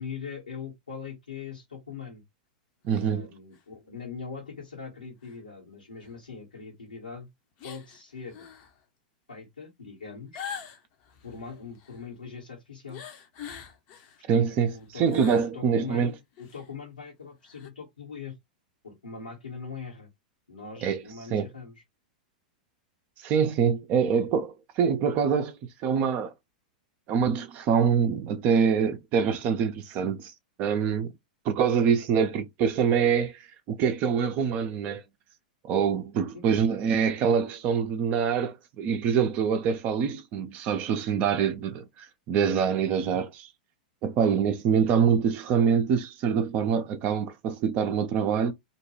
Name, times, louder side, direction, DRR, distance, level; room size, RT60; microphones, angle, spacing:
voice 1, 0.0-2.2 2.9-7.3 7.6-8.5 9.3-10.4 11.2-13.0 14.3-15.0 15.3-18.3 18.8-20.1 20.5-21.7 36.3-36.4, left 5 dB, 80° left, 1.2 m, -41 dB
voice 2, 2.8-3.3 14.3-16.1 20.8-21.0 21.3-21.5 23.2-26.3 27.1-30.3 30.6-31.1 31.4-35.0 35.6-43.5 44.0-48.5, right 7 dB, 40° right, 0.5 m, -25 dB
sound 1, 2.9-3.1 3.5-3.6 5.2-5.3 6.0-6.1 7.6-8.0 8.3-8.7 10.3-12.1 12.9-14.2 14.6-15.5 15.9-16.0 16.3-16.7 17.5-17.7, left 8 dB, 45° left, 0.7 m, -43 dB
2.5 x 2.2 x 3.0 m
figure-of-eight pair, 95°, 4 cm